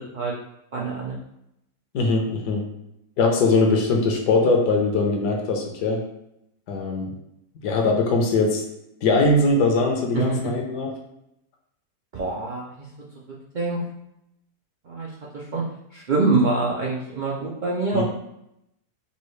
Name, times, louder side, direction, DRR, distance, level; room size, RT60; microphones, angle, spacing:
voice 1, 0.7-1.2 10.1-10.2 12.1-12.9 13.5-13.8 14.9-15.1 15.3-15.6 15.9-18.0, right 3 dB, 85° right, -4 dB, 0.4 m, -24 dB
voice 2, 1.9-2.6 3.2-6.0 6.7-7.1 7.6-8.6 9.0-10.9 17.9-18.0, left 3 dB, 75° left, 1 dB, 1.3 m, -21 dB
5.5 x 2.3 x 3.2 m, 0.81 s
omnidirectional pair, 1.7 m